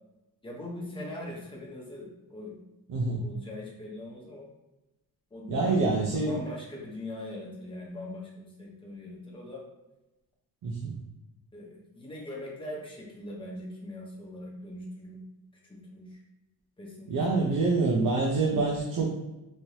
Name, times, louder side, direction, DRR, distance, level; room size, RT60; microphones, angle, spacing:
voice 1, 0.4-2.5 3.2-4.5 5.3-9.6 11.5-15.2 15.6-16.2 16.8-18.1, left 1 dB, 15° left, -3 dB, 0.8 m, -41 dB
voice 2, 2.9-3.2 5.5-6.4 10.6-11.0 17.1-19.1, right 3 dB, 60° right, -2 dB, 0.6 m, -26 dB
3.2 x 3.0 x 2.7 m, 1.0 s
wide cardioid pair, 150°, 36 cm